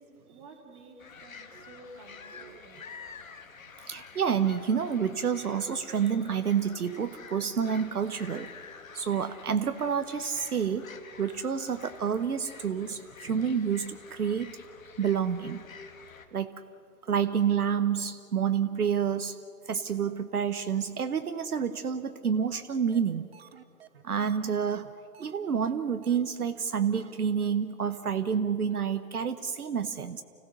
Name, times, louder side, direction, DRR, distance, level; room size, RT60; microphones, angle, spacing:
voice 1, 0.0-2.8, right 2 dB, 20° right, 3 dB, 2.5 m, -51 dB
sound 1, 1.0-16.3, left 6 dB, 60° left, 2.0 m, -49 dB
voice 2, 3.8-8.5 8.9-10.9 11.2-14.5 15.0-15.6 16.3-16.6 17.1-19.4 19.7-23.3 24.0-24.9 25.2-30.2, right 7 dB, 70° right, 9 dB, 1.0 m, -29 dB
sound 2, 22.5-22.6 22.9-23.0 23.3-25.3 25.6-25.7 26.0-26.2 26.5-26.6 26.9-27.1 27.4-27.5 27.8-28.0 28.3-28.4 28.7-28.8, right 8 dB, 40° right, 1.1 m, -52 dB
29.5 x 16.0 x 6.6 m, 2.6 s
figure-of-eight pair, 150°, 47 cm